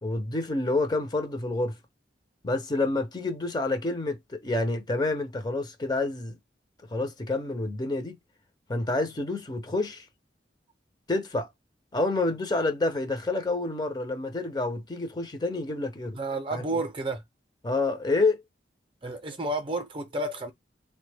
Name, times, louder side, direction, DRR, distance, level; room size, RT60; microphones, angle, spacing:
voice 1, 0.0-1.8 2.4-6.3 6.9-8.2 8.7-10.1 11.1-11.5 11.9-16.2 16.5-16.6 17.6-18.4, left 2 dB, 25° left, 0.5 m, -28 dB
voice 2, 16.1-17.2 19.0-20.5, right 2 dB, 30° right, 0.5 m, -31 dB
3.2 x 2.1 x 3.2 m
head